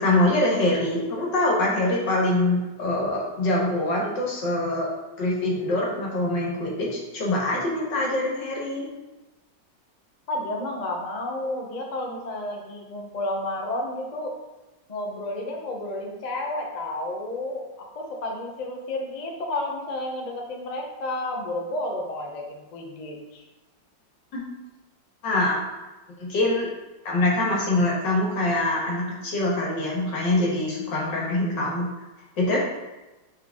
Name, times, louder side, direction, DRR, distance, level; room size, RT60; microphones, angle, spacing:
voice 1, 0.0-4.9 5.2-8.8 24.3-24.4 25.2-25.7 26.2-26.7 27.1-31.9 32.4-32.6, left 1 dB, 70° left, -3 dB, 2.1 m, -24 dB
voice 2, 10.3-14.4 14.9-17.7 17.9-23.4, left 1 dB, 40° left, 0 dB, 0.6 m, -31 dB
6.1 x 4.5 x 3.6 m, 1.1 s
omnidirectional pair, 2.0 m